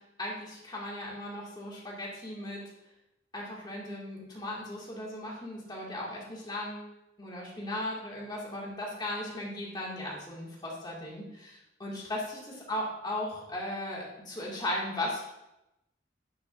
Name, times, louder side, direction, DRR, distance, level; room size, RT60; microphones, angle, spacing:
voice 1, 0.2-2.6 3.3-6.9 7.2-12.4 12.7-15.2, left 1 dB, 25° left, -4 dB, 2.4 m, -37 dB
10.5 x 6.8 x 2.7 m, 0.88 s
head